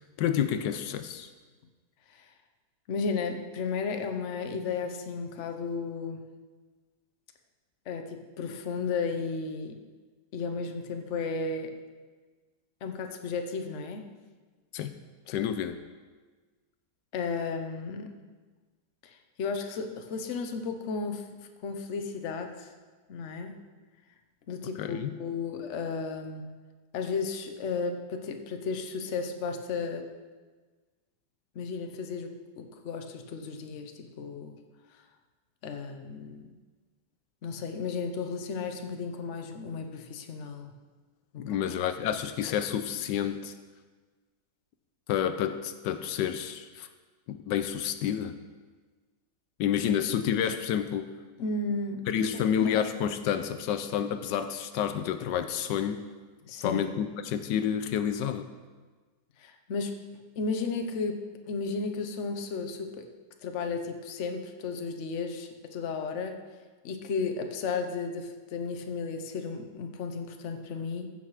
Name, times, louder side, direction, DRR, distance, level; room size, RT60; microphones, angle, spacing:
voice 1, 0.2-1.3 14.7-14.9 15.3-15.8 24.8-25.2 41.4-43.5 45.1-46.9 47.3-48.4 49.6-51.1 52.1-56.1 56.6-58.5, left 9 dB, 80° left, 10 dB, 1.2 m, -29 dB
voice 2, 2.9-6.3 7.9-9.8 10.3-11.7 12.8-14.1 17.1-18.1 19.0-21.2 21.6-22.7 23.1-23.6 24.5-26.5 26.9-30.1 31.5-34.6 35.6-36.5 37.4-40.7 41.3-41.6 51.4-52.3 52.6-52.8 56.4-56.8 59.4-59.9 60.4-63.1 63.4-66.4 66.8-71.1, left 4 dB, 50° left, 5 dB, 1.0 m, -34 dB
14.5 x 5.7 x 4.8 m, 1.4 s
omnidirectional pair, 1.9 m